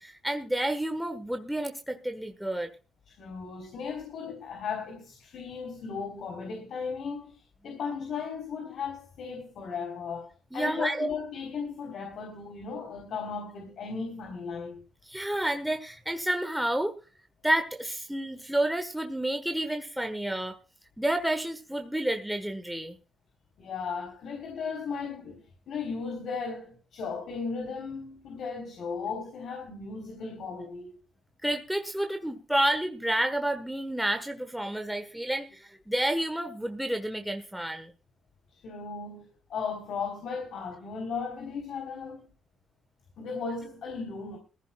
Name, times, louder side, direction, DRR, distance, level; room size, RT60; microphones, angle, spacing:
voice 1, 0.0-2.7 10.5-11.1 15.0-16.9 17.4-20.6 21.0-23.0 31.4-37.9, right 1 dB, 5° right, 1.3 m, -30 dB
voice 2, 3.1-7.3 7.6-14.8 23.6-31.0 38.6-42.3 43.2-44.4, left 5 dB, 65° left, 3.7 m, -36 dB
21.5 x 15.0 x 2.3 m
cardioid pair, 90°, 0 cm